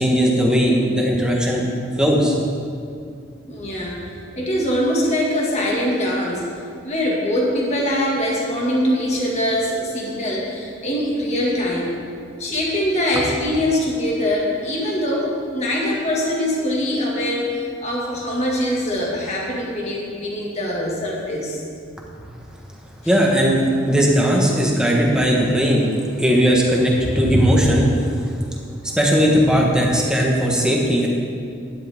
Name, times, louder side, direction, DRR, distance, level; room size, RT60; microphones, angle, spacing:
voice 1, 0.0-1.6 2.0-2.3 22.2-22.3 23.0-25.8 26.2-28.1 28.9-31.1, equal, 5° right, -2 dB, 1.3 m, -17 dB
voice 2, 3.5-4.0 4.4-6.4 6.8-11.9 12.4-21.6, left 1 dB, 35° left, -3 dB, 1.9 m, -23 dB
12.0 x 10.5 x 3.6 m, 2.3 s
head